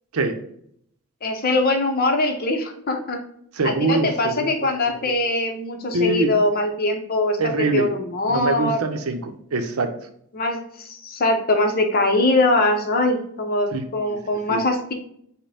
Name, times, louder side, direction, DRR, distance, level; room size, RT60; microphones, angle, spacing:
voice 1, 1.2-3.2 3.6-7.4 7.7-8.8 10.3-14.9, left 2 dB, 45° left, 3 dB, 0.7 m, -22 dB
voice 2, 3.6-4.5 5.9-6.3 7.4-7.9 8.3-9.9 13.7-13.8 14.5-14.6, right 2 dB, 90° right, 6 dB, 0.6 m, -23 dB
5.2 x 2.1 x 4.2 m, 0.68 s
head